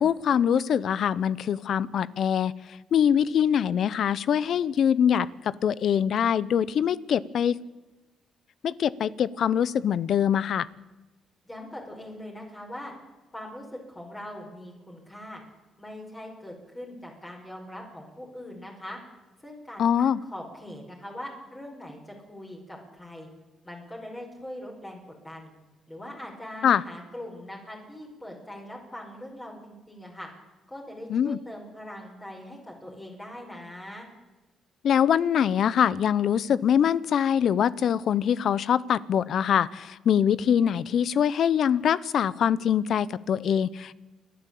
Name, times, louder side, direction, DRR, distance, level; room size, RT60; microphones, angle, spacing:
voice 1, 0.0-2.5 2.9-7.6 8.6-10.7 19.8-20.2 26.6-26.8 31.1-31.4 34.8-43.9, left 8 dB, 65° left, 20 dB, 0.8 m, -23 dB
voice 2, 11.4-12.9 13.3-15.4 15.8-19.0 19.4-23.3 23.6-25.5 25.9-30.3 30.7-34.1, left 1 dB, 20° left, -1 dB, 5.4 m, -41 dB
29.5 x 11.0 x 8.5 m, 1.1 s
cardioid pair, 90°, 0 cm